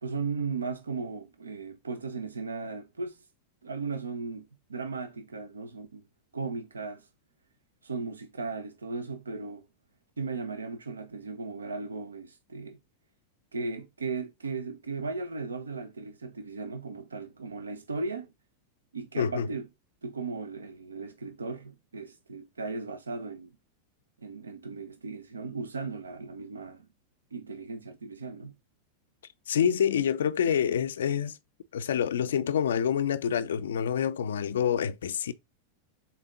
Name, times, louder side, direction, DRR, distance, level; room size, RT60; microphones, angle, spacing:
voice 1, 0.0-3.2 3.6-6.0 6.3-7.0 7.8-9.7 10.2-12.8 13.5-18.3 18.9-19.7 20.0-23.5 24.2-26.9 27.3-28.5, right 4 dB, 75° right, 1.2 m, -36 dB
voice 2, 19.2-19.5 29.5-31.4 31.7-35.3, left 8 dB, 65° left, 0.6 m, -27 dB
7.1 x 4.2 x 3.9 m
figure-of-eight pair, 90°, 0 cm